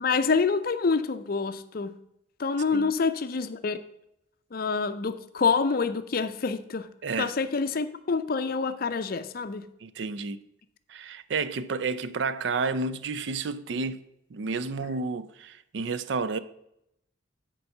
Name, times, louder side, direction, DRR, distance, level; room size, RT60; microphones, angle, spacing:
voice 1, 0.0-1.9 2.4-3.8 4.5-6.9 7.2-9.7, left 4 dB, 45° left, 0.5 m, -27 dB
voice 2, 9.8-10.4 10.9-14.0 14.3-16.4, right 4 dB, 60° right, 0.4 m, -31 dB
6.9 x 4.6 x 6.5 m
head